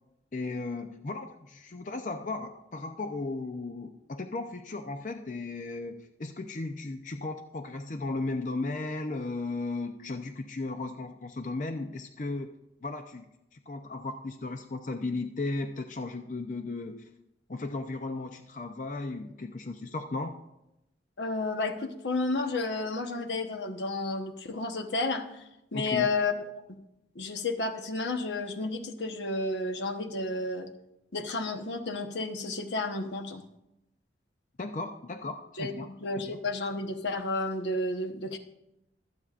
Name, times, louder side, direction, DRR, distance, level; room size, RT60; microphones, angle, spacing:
voice 1, 0.3-12.5 12.8-13.2 13.5-17.0 17.5-20.4 25.7-26.1 34.6-35.9 36.2-36.4, left 3 dB, 45° left, 6 dB, 0.6 m, -35 dB
voice 2, 21.2-25.4 25.7-26.7 27.1-30.7 31.1-33.4 35.6-38.4, left 3 dB, 85° left, 6 dB, 1.1 m, -31 dB
24.0 x 8.1 x 2.5 m, 0.87 s
head